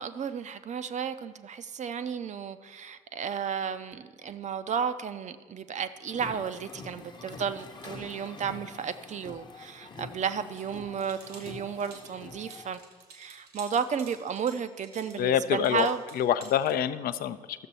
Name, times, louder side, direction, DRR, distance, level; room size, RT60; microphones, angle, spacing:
voice 1, 0.0-12.8 13.1-16.0, right 7 dB, 40° right, 11 dB, 0.5 m, -33 dB
sound 1, 6.1-12.8, left 3 dB, 20° left, 0.9 m, -46 dB
sound 2, 10.5-16.7, right 4 dB, 75° right, 1.4 m, -51 dB
voice 2, 15.2-15.9 16.1-17.7, left 10 dB, 50° left, 13 dB, 0.5 m, -26 dB
13.5 x 6.7 x 4.2 m, 1.5 s
figure-of-eight pair, 50°, 20 cm